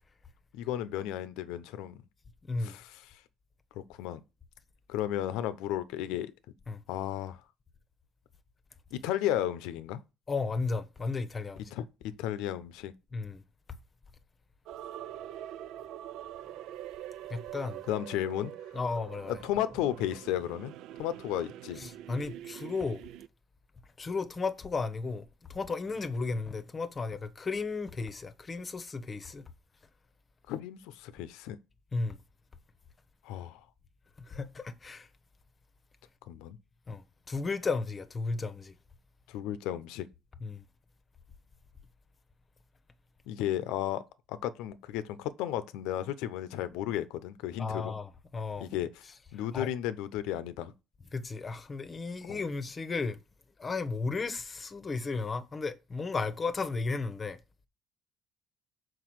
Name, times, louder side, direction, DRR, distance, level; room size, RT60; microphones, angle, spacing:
voice 1, 0.5-2.0 2.6-3.2 3.7-4.2 4.9-6.3 6.9-7.4 8.9-10.0 11.7-11.9 12.2-12.9 17.9-18.5 19.3-20.7 21.0-21.8 30.5-31.6 33.2-33.6 36.3-36.6 39.3-40.1 43.3-44.0 44.3-47.9 48.6-49.0 49.3-50.7 52.3-52.4, left 12 dB, 85° left, 0.7 m, -34 dB
voice 2, 10.3-11.7 13.1-13.4 17.3-17.8 18.7-19.4 21.8-23.0 24.0-25.2 25.5-29.4 31.9-32.2 34.2-35.1 36.9-38.7 40.4-40.6 47.6-48.7 49.5-49.7 51.1-53.2 53.6-57.4, left 4 dB, 30° left, 0.9 m, -34 dB
sound 1, 14.7-23.3, right 12 dB, 75° right, 0.4 m, -44 dB
6.0 x 4.7 x 4.7 m
cardioid pair, 100°, 0 cm